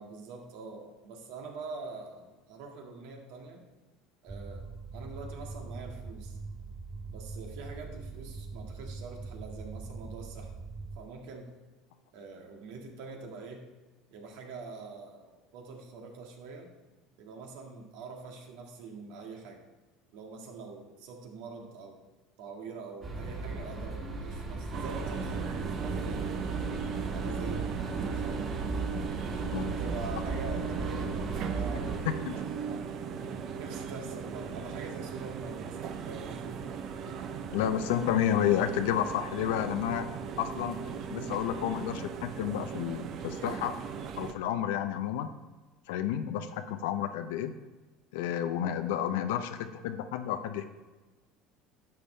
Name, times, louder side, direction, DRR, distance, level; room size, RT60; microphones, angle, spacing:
voice 1, 0.0-3.7 4.2-4.6 4.9-6.4 7.1-10.5 11.0-11.5 12.1-13.7 14.1-15.2 15.5-16.7 17.2-19.6 20.1-22.0 22.4-26.7 27.1-28.4 29.3-32.1 32.6-36.6, right 4 dB, 75° right, 2 dB, 1.8 m, -44 dB
sound 1, 4.3-11.0, right 4 dB, 15° right, 0.4 m, -42 dB
sound 2, 23.0-32.0, right 3 dB, 30° right, 2.3 m, -36 dB
sound 3, 24.7-44.3, right 6 dB, 50° right, 0.7 m, -37 dB
voice 2, 37.5-40.1 40.4-43.8 44.2-45.3 45.9-47.5 48.1-50.7, left 10 dB, 85° left, 8 dB, 0.6 m, -31 dB
11.5 x 6.8 x 3.3 m, 1.2 s
supercardioid pair, 115°, 0 cm